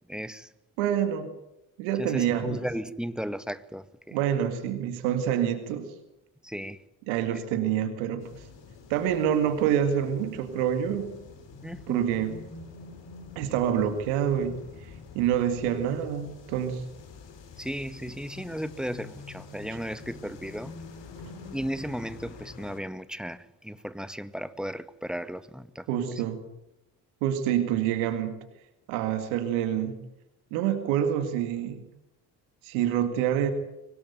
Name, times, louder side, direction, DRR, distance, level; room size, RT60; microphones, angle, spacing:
voice 1, 0.1-0.5 2.0-4.2 6.4-6.8 7.3-7.4 11.6-12.1 17.6-20.7 21.5-26.2, equal, ahead, 1.7 m, -35 dB
voice 2, 0.8-1.3 1.8-2.6 4.1-5.9 7.1-8.4 8.9-11.2 11.9-12.5 13.4-16.8 25.9-26.5 27.2-28.4 28.9-30.1 30.5-31.8 32.6-33.5, right 9 dB, 85° right, 2.0 m, -27 dB
sound 1, 8.2-22.8, left 4 dB, 65° left, 4.5 m, -46 dB
24.5 x 18.5 x 9.3 m
hypercardioid pair, 40°, 47 cm